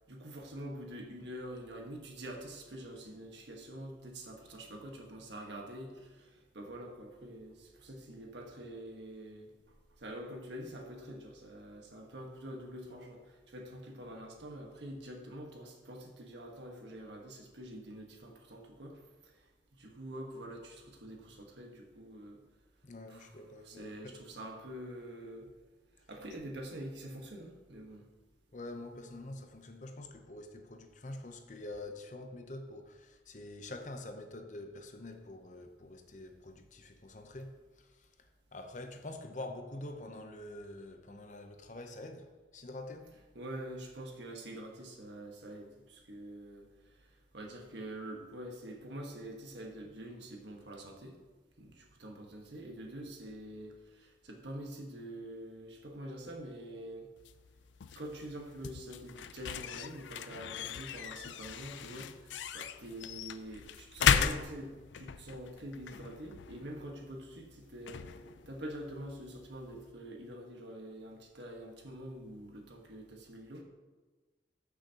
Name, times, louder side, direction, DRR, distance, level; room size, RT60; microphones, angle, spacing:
voice 1, 0.1-9.5 10.0-19.4 19.7-22.4 23.1-23.3 23.6-25.5 26.1-28.0 43.3-47.0 47.3-51.2 51.6-57.1 57.9-68.1 68.5-73.6, right 1 dB, 75° right, 1.4 m, -46 dB
voice 2, 22.8-24.2 28.5-43.1, left 2 dB, 40° left, 0.7 m, -46 dB
sound 1, 57.2-69.9, left 7 dB, 85° left, 0.4 m, -37 dB
14.0 x 6.3 x 2.9 m
head